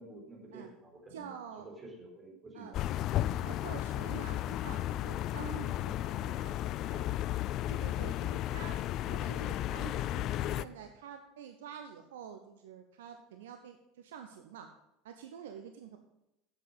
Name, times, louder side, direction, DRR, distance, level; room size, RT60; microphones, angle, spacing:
voice 1, 0.0-1.3 2.0-3.1 6.3-7.7 9.3-9.6, right 2 dB, 25° right, -1 dB, 4.5 m, -52 dB
voice 2, 1.1-1.7 2.5-2.8 3.4-6.6 7.7-14.7 15.0-16.0, right 8 dB, 70° right, 6 dB, 0.7 m, -48 dB
sound 1, 2.7-10.6, left 13 dB, 45° left, 0.3 m, -34 dB
8.5 x 7.4 x 6.7 m, 0.87 s
figure-of-eight pair, 75°, 0 cm